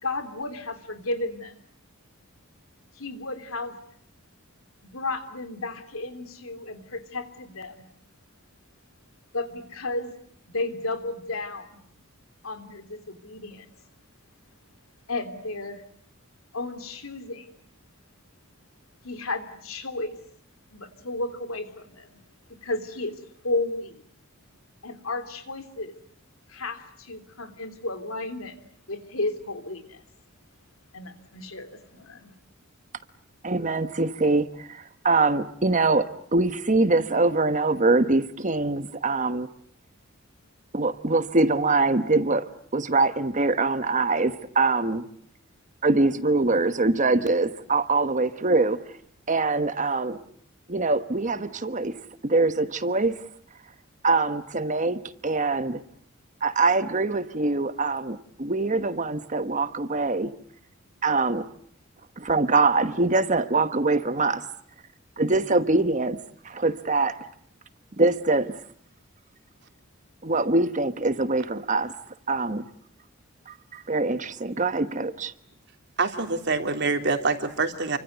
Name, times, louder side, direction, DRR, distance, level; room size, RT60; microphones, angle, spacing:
voice 1, 0.0-1.5 3.0-3.8 4.8-7.9 9.3-10.1 10.5-11.8 12.4-13.7 15.1-15.8 16.5-17.5 19.0-20.2 20.7-22.2 22.6-24.0 24.8-25.9 26.5-28.6 28.9-30.0 30.9-32.3, left 2 dB, 75° left, 3.3 m, -33 dB
voice 2, 33.4-39.5 40.7-45.0 45.8-48.8 49.3-50.2 50.7-51.9 52.2-53.1 54.0-55.8 56.4-60.3 61.0-61.5 62.2-64.5 65.2-66.2 66.4-67.3 68.0-68.5 70.2-72.0 72.3-72.6 73.5-75.3, right 3 dB, 35° right, 1.2 m, -23 dB
voice 3, 76.0-78.0, right 3 dB, 55° right, 3.3 m, -25 dB
29.5 x 25.0 x 8.1 m
head